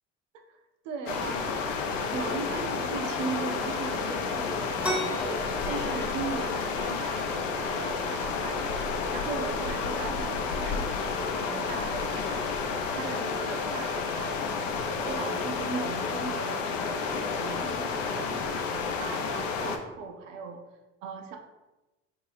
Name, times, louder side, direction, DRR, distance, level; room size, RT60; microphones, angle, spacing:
voice 1, 0.3-1.6 2.1-12.5 12.9-14.8 15.0-20.6 21.0-21.4, right 4 dB, 80° right, 3 dB, 0.5 m, -38 dB
sound 1, 1.1-19.8, left 5 dB, 85° left, 0.5 m, -31 dB
sound 2, 4.8-14.2, equal, 5° right, 0.7 m, -41 dB
2.6 x 2.6 x 3.2 m, 1.0 s
hypercardioid pair, 65°, 37 cm